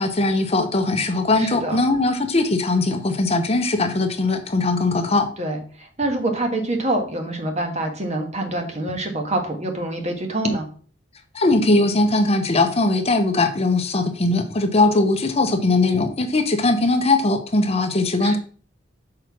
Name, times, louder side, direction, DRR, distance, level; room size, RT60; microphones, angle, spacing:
voice 1, 0.0-5.3 11.3-18.4, left 2 dB, 35° left, 7 dB, 0.8 m, -20 dB
voice 2, 1.4-1.8 5.4-10.7 18.2-18.4, right 1 dB, 40° right, 3 dB, 1.6 m, -25 dB
6.3 x 4.8 x 5.9 m, 0.42 s
head